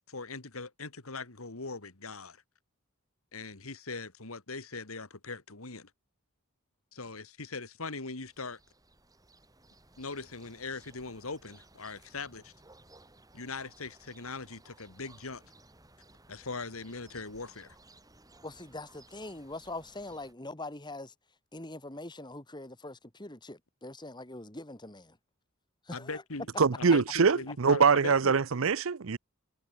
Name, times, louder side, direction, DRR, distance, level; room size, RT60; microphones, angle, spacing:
voice 1, 0.1-2.4 3.3-5.9 6.9-8.6 10.0-12.5 13.3-15.4 16.3-17.7 25.9-26.5 26.8-28.4, left 3 dB, 85° left, 2.4 m, -40 dB
sound 1, 8.2-20.3, right 2 dB, 15° right, 6.1 m, -59 dB
voice 2, 18.4-21.1 21.5-25.2 25.9-26.2, left 2 dB, 20° left, 3.0 m, -43 dB
voice 3, 26.6-29.2, right 5 dB, 70° right, 0.6 m, -24 dB
head